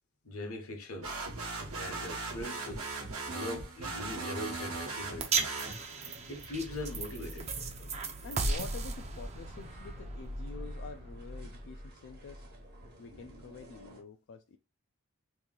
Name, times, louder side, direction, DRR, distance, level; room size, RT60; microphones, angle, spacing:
voice 1, 0.2-1.2 1.8-5.4 6.3-7.9, left 2 dB, 70° left, 0.9 m, -41 dB
sound 1, 1.0-6.2, right 3 dB, 75° right, 1.1 m, -39 dB
sound 2, 4.5-14.0, equal, 45° right, 1.0 m, -47 dB
sound 3, 5.2-11.6, right 4 dB, 30° right, 0.5 m, -36 dB
voice 2, 8.2-12.5 13.0-14.6, left 4 dB, 50° left, 0.3 m, -47 dB
2.9 x 2.6 x 3.7 m
head